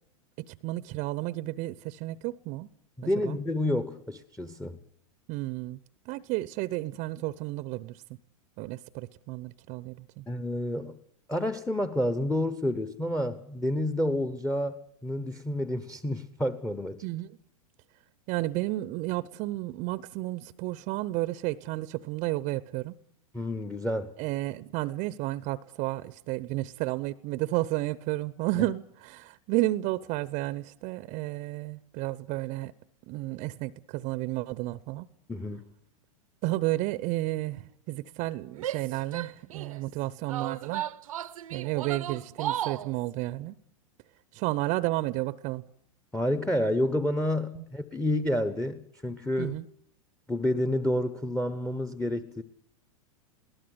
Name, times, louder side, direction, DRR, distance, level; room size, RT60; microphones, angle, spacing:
voice 1, 0.4-2.7 3.2-3.4 5.3-5.8 6.1-8.0 8.6-10.2 17.0-17.4 18.3-22.9 24.2-32.7 33.1-35.1 36.4-40.9 41.5-43.6 44.3-45.6 47.5-47.6 49.4-49.7, right 18 dB, 40° right, 0.8 m, -32 dB
voice 2, 3.0-4.8 10.3-11.0 11.3-14.8 15.0-17.0 23.3-24.1 35.3-35.7 46.1-49.6 50.3-52.4, left 1 dB, 5° left, 1.0 m, -29 dB
Female speech woman speaking / Yell, 38.5-39.8 40.3-42.9, right 11 dB, 70° right, 0.8 m, -35 dB
21.0 x 18.0 x 8.0 m
hypercardioid pair, 100°, 18 cm